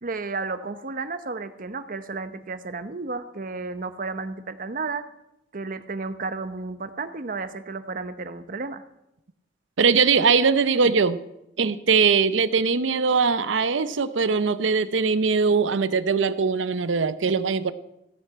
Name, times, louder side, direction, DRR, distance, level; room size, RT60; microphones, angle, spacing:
voice 1, 0.0-5.1 5.5-8.8, right 3 dB, 50° right, 11 dB, 0.9 m, -32 dB
voice 2, 9.8-11.2 11.6-17.7, right 5 dB, 85° right, 13 dB, 0.7 m, -21 dB
15.5 x 6.7 x 8.5 m, 0.86 s
head